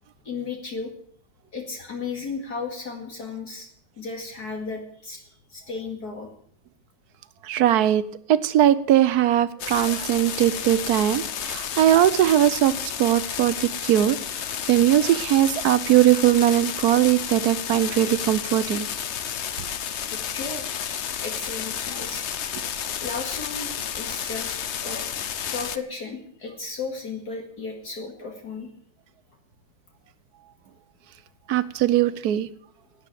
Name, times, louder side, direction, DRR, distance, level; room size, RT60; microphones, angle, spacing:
voice 1, 0.2-0.9 1.5-3.7 4.0-6.3 20.1-20.8 21.2-22.3 23.0-25.1 25.5-28.7, left 4 dB, 50° left, 1 dB, 2.7 m, -35 dB
voice 2, 7.4-8.0 8.3-12.7 13.0-14.2 14.7-18.9 31.5-32.5, right 12 dB, 65° right, 15 dB, 1.0 m, -20 dB
sound 1, 9.6-25.8, left 8 dB, 70° left, 0.6 m, -31 dB
12.0 x 9.1 x 9.1 m, 0.63 s
omnidirectional pair, 2.2 m